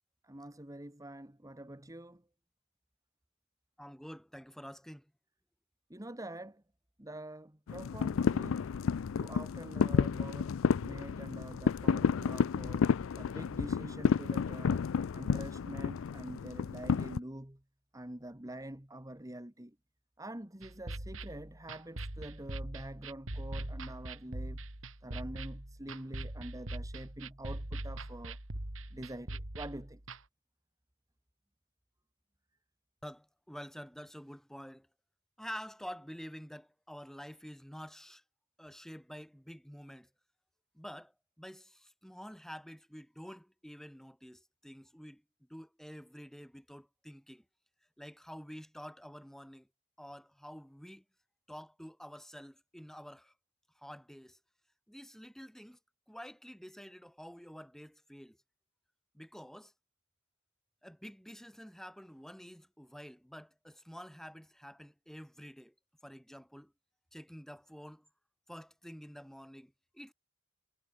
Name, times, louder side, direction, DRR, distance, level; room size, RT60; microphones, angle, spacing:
voice 1, 0.2-2.2 5.9-6.6 7.0-8.7 9.2-14.8 15.1-17.6 17.9-19.8 20.2-24.6 25.0-28.4 28.9-30.0, right 1 dB, 15° right, 1.8 m, -46 dB
voice 2, 3.8-5.1 33.0-34.9 35.4-38.2 38.6-40.1 40.7-45.2 45.5-47.4 48.0-49.7 50.0-51.0 51.5-53.3 53.7-54.4 54.9-55.8 56.1-58.4 59.1-59.7 60.8-65.7 66.0-66.7 67.1-68.1 68.5-70.1, equal, ahead, 6.8 m, -48 dB
sound 1, 7.7-17.2, left 6 dB, 80° left, 0.4 m, -31 dB
sound 2, 20.6-30.2, right 1 dB, 85° right, 3.2 m, -42 dB
head